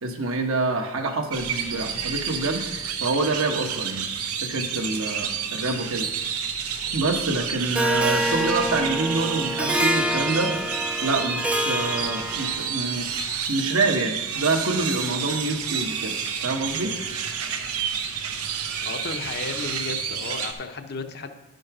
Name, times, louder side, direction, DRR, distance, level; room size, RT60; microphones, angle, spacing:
voice 1, 0.0-2.6 3.0-4.1 4.4-6.1 6.9-10.5 11.0-13.1 13.5-17.0, right 3 dB, 65° right, 4 dB, 1.2 m, -26 dB
sound 1, 1.3-20.5, right 7 dB, 85° right, 0.9 m, -30 dB
Harp, 7.7-12.8, equal, 5° right, 0.4 m, -26 dB
voice 2, 18.8-21.5, left 3 dB, 50° left, 6 dB, 0.8 m, -34 dB
10.5 x 5.3 x 6.0 m, 1.0 s
head